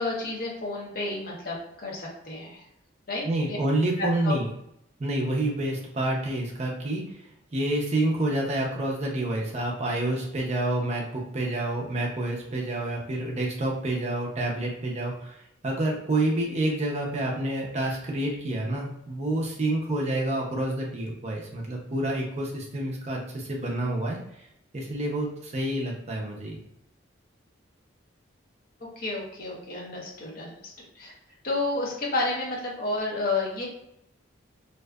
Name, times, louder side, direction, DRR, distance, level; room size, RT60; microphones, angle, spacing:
voice 1, 0.0-2.6 3.1-3.6 4.0-4.3 29.0-31.1 31.4-33.7, left 2 dB, 45° left, -3 dB, 0.7 m, -31 dB
voice 2, 3.2-4.5 5.0-7.2 7.5-24.4 24.7-26.6, right 1 dB, 35° right, -2 dB, 0.5 m, -28 dB
2.6 x 2.3 x 2.2 m, 0.77 s
head